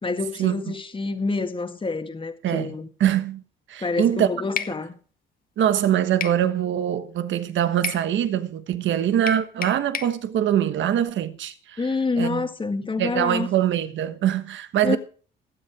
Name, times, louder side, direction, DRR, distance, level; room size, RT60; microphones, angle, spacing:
voice 1, 0.0-2.9 3.8-5.0 11.8-13.5 14.8-15.0, left 3 dB, 25° left, 1.9 m, -27 dB
voice 2, 2.4-2.7 3.0-3.4 3.7-4.3 5.6-11.8 12.2-12.5 13.0-15.0, right 10 dB, 70° right, 1.3 m, -23 dB
sound 1, 4.6-4.8 6.2-6.4 7.8-8.1 9.3-10.2, left 6 dB, 45° left, 1.4 m, -30 dB
18.5 x 7.9 x 4.8 m
cardioid pair, 90°, 20 cm